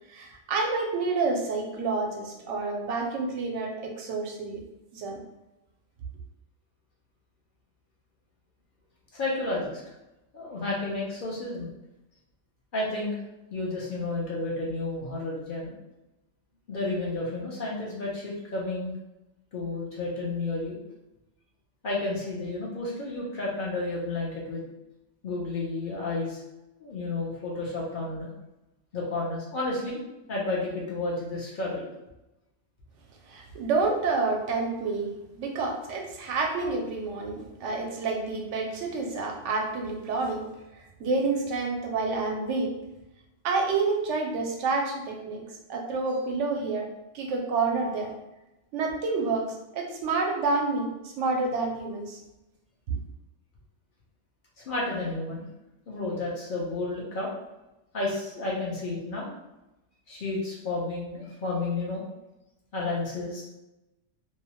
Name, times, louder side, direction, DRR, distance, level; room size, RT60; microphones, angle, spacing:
voice 1, 0.1-4.6 4.9-5.2 33.3-40.4 40.7-42.7 43.4-46.9 47.1-48.1 48.7-52.2, right 3 dB, 75° right, 2 dB, 0.9 m, -29 dB
voice 2, 9.1-9.8 10.3-11.7 12.7-13.1 13.5-15.7 16.7-18.9 19.5-20.8 21.8-24.6 25.2-26.4 26.8-28.3 28.9-30.0 30.3-31.9 54.6-55.5 55.9-57.3 57.9-59.4 60.1-62.0 62.7-63.4, left 2 dB, 50° left, -4 dB, 0.7 m, -31 dB
2.7 x 2.0 x 2.9 m, 0.95 s
omnidirectional pair, 1.3 m